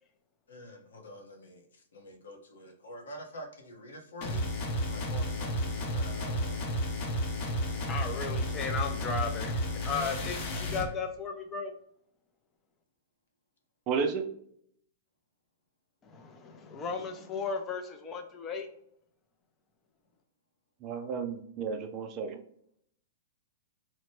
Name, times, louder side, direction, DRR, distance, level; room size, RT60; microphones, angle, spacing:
voice 1, 0.5-4.5 4.8-6.6, equal, 85° left, 3 dB, 0.8 m, -47 dB
sound 1, 4.2-10.9, equal, 45° left, 0.8 m, -32 dB
voice 2, 7.4-11.7 16.0-18.7, left 5 dB, 20° left, 4 dB, 0.5 m, -36 dB
voice 3, 13.9-14.3 20.8-22.4, right 5 dB, 35° right, 6 dB, 0.4 m, -32 dB
2.9 x 2.1 x 3.1 m, 0.67 s
hypercardioid pair, 135°, 0 cm